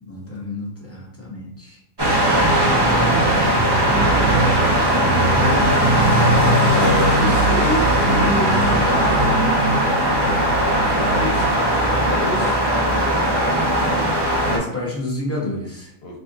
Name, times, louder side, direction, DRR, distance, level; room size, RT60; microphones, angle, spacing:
voice 1, 0.0-1.8 14.5-15.9, left 1 dB, 15° left, -5 dB, 0.7 m, -29 dB
sound 1, 2.0-14.6, right 1 dB, 35° right, 0.4 m, -18 dB
voice 2, 3.5-4.4 6.7-9.8 11.0-12.6 16.0-16.2, equal, 55° left, -1 dB, 1.0 m, -27 dB
2.6 x 2.4 x 3.9 m, 0.78 s
omnidirectional pair, 1.4 m